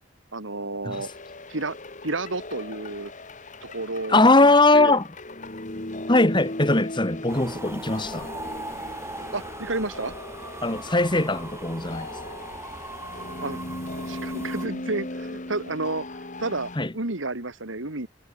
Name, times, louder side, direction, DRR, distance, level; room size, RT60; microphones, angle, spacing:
voice 1, 0.3-1.1 1.5-1.8 2.0-3.1 3.6-5.0 9.3-10.1 13.4-13.6 14.1-16.0 16.4-18.1, right 2 dB, 75° right, 2.6 m, -31 dB
sound 1, 0.9-16.8, left 2 dB, 40° left, 2.5 m, -38 dB
voice 2, 4.1-5.1 6.1-8.3 10.6-12.1 16.8-16.9, left 2 dB, 25° left, 2.0 m, -20 dB
sound 2, 7.3-14.7, right 2 dB, 15° right, 3.9 m, -39 dB
head